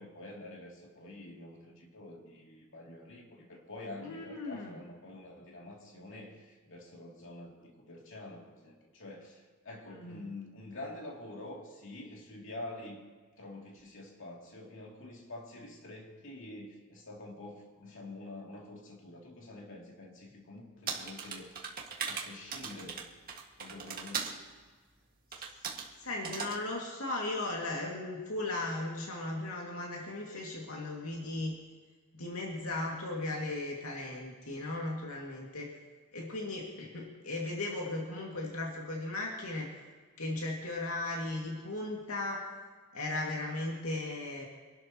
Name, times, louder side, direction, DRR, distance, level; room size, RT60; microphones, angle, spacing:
voice 1, 0.0-13.0 13.4-21.7 22.1-23.0 23.6-24.4, left 2 dB, 65° left, -1 dB, 2.9 m, -47 dB
voice 2, 4.0-4.7 10.0-10.3 26.0-31.5 32.1-35.7 36.1-39.7 40.2-42.4 42.9-44.5, left 2 dB, 85° left, -2 dB, 2.3 m, -36 dB
sound 1, 20.9-24.4 25.3-25.9 26.2-26.6, right 6 dB, 45° right, 1.9 m, -39 dB
26.0 x 12.0 x 3.0 m, 1.5 s
head